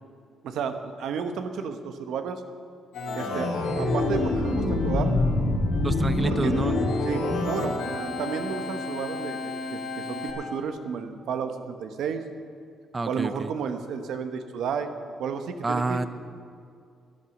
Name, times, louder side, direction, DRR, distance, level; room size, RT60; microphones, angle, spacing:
voice 1, 0.4-2.4 3.1-3.5 3.8-5.1 6.2-12.3 13.0-14.9 15.2-16.1, right 6 dB, 75° right, 7 dB, 1.1 m, -32 dB
Organ, 2.9-10.3, left 2 dB, 85° left, 4.1 m, -27 dB
voice 2, 5.8-6.7 12.9-13.3 15.6-16.0, right 3 dB, 25° right, 12 dB, 0.7 m, -27 dB
13.0 x 11.0 x 7.1 m, 2.3 s
cardioid pair, 90°, 0 cm